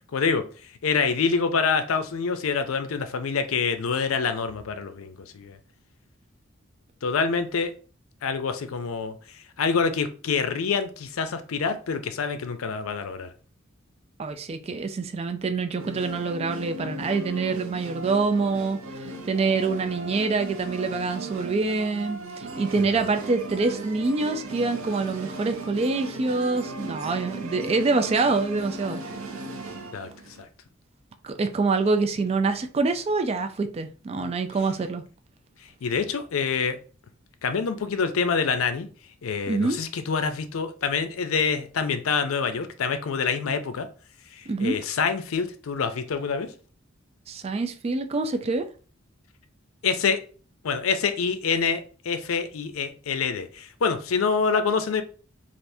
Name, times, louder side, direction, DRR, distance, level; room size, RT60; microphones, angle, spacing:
voice 1, 0.1-0.4 0.8-5.6 7.0-7.7 8.2-13.3 29.9-30.1 30.4-30.5 35.8-36.8 37.4-38.9 39.2-43.9 44.3-46.5 49.8-50.2 50.6-55.0, left 5 dB, 90° left, 0.5 m, -26 dB
voice 2, 14.2-18.8 19.2-29.0 31.2-35.0 39.5-39.8 44.5-44.8 47.3-48.7, right 3 dB, 30° right, 0.3 m, -26 dB
sound 1, 15.8-30.4, right 2 dB, 85° right, 0.6 m, -37 dB
3.4 x 2.5 x 2.6 m
head